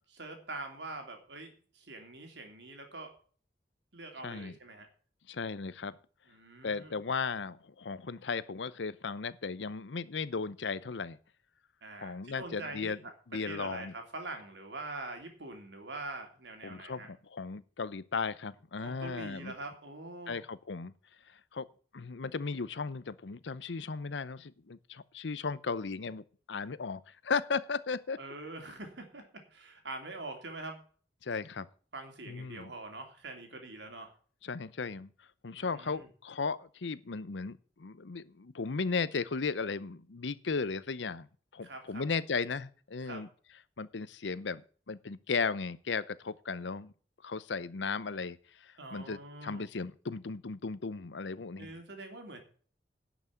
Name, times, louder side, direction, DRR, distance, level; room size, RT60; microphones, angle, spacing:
voice 1, 0.1-3.1 3.9-4.9 6.3-7.0 11.8-12.9 13.4-17.1 18.8-20.4 28.2-30.8 31.9-34.1 35.5-36.1 41.6-42.0 43.0-43.2 48.8-49.7 51.6-52.4, right 2 dB, 80° right, 3.0 m, -44 dB
voice 2, 4.2-4.5 5.3-6.0 6.6-11.2 12.0-13.0 13.3-13.9 16.6-19.5 20.3-20.9 21.3-21.7 21.9-28.2 31.2-31.7 32.3-32.7 34.4-35.1 35.4-41.3 41.5-43.3 43.8-44.6 44.9-46.9 47.2-51.7, left 4 dB, 85° left, 0.7 m, -36 dB
11.0 x 6.0 x 8.3 m
head